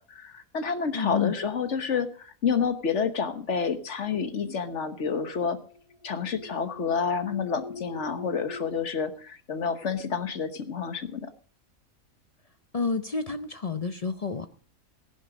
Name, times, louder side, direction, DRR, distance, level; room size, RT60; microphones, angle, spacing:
voice 1, 0.1-5.6 6.0-11.3, left 6 dB, 55° left, 10 dB, 1.4 m, -29 dB
voice 2, 0.9-1.3 12.7-14.5, left 5 dB, 40° left, 10 dB, 0.5 m, -29 dB
sound 1, 4.9-8.8, left 4 dB, 25° left, 5.7 m, -43 dB
15.0 x 11.0 x 5.1 m, 0.43 s
omnidirectional pair, 1.5 m